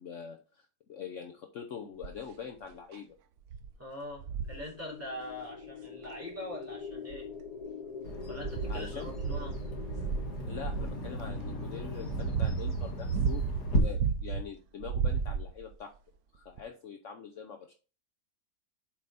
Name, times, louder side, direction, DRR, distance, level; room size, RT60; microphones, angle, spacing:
voice 1, 0.0-3.2 8.7-9.1 10.5-13.5 13.7-15.9 16.3-17.7, left 7 dB, 55° left, 4 dB, 1.1 m, -44 dB
sound 1, 2.0-2.3 2.9-3.0 3.5-3.7 4.2-4.6 6.0-6.1 6.9-7.6 8.1-11.0 11.7-14.5 14.8-15.7 16.6-16.7, right 6 dB, 70° right, 1.2 m, -33 dB
voice 2, 3.8-7.3 8.3-9.6, left 1 dB, 10° right, -4 dB, 2.9 m, -42 dB
sound 2, 4.3-12.5, left 5 dB, 35° left, 0.6 m, -45 dB
Bird vocalization bird call bird song, 8.0-13.8, equal, 90° left, 2.4 m, -36 dB
7.6 x 4.9 x 4.1 m, 0.35 s
omnidirectional pair, 1.7 m